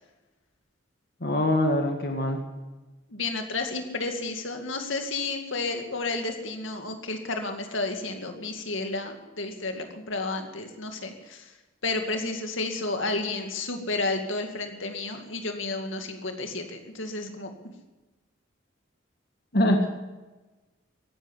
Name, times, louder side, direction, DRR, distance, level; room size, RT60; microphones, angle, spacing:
voice 1, 1.2-2.4 19.5-19.9, left 1 dB, 50° left, 3 dB, 1.7 m, -23 dB
voice 2, 3.1-11.4 11.8-17.5, left 3 dB, 80° left, 4 dB, 2.1 m, -31 dB
15.5 x 11.0 x 8.0 m, 1.2 s
head